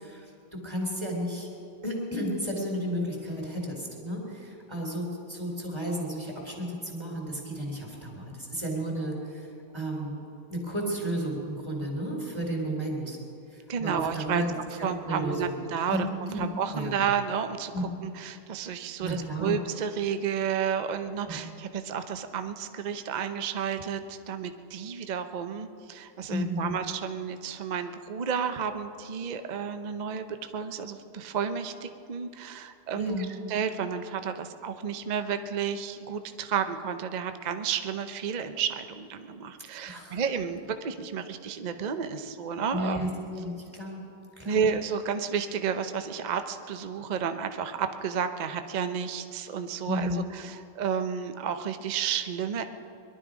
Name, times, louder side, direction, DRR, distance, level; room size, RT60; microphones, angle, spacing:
voice 1, 0.0-1.5 1.8-13.2 13.5-14.5 15.0-15.5 15.9-16.4 16.7-17.0 17.7-17.8 19.0-19.6 21.2-21.4 26.3-26.7 32.9-33.3 39.8-40.2 42.7-43.1 43.3-44.0 44.4-44.7 49.9-50.2, equal, 15° right, -2 dB, 3.3 m, -33 dB
voice 2, 13.7-14.4 14.7-17.7 18.0-30.3 30.5-33.1 33.5-43.0 44.5-52.6, right 7 dB, 65° right, 9 dB, 0.4 m, -31 dB
22.0 x 12.0 x 5.0 m, 2.6 s
omnidirectional pair, 1.9 m